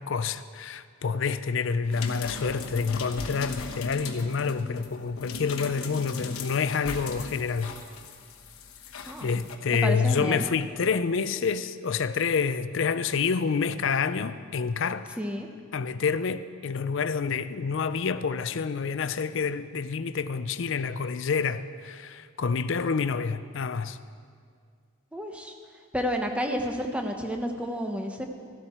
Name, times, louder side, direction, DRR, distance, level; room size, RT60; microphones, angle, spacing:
voice 1, 0.0-7.7 9.2-15.2 15.7-24.0, left 5 dB, 60° left, 0.4 m, -28 dB
sound 1, 1.9-9.6 10.6-10.7, left 4 dB, 85° left, 1.1 m, -38 dB
voice 2, 9.1-9.4 9.7-10.4 15.2-15.5 25.1-25.5 25.9-28.3, equal, 5° right, 0.8 m, -30 dB
14.5 x 12.0 x 4.3 m
head